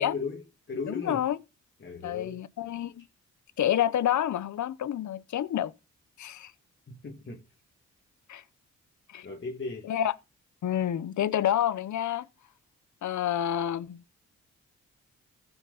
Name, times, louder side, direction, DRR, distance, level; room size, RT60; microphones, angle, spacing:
voice 1, 0.0-1.3 1.8-2.4 6.9-7.5 9.2-9.9, left 4 dB, 40° left, 1.9 m, -37 dB
voice 2, 0.9-1.4 2.0-3.0 3.6-5.7 6.2-6.5 8.3-8.4 9.1-9.3 9.9-10.1 10.6-12.3 13.0-14.0, left 11 dB, 70° left, 0.8 m, -28 dB
15.0 x 5.9 x 4.0 m
cardioid pair, 80°, 30 cm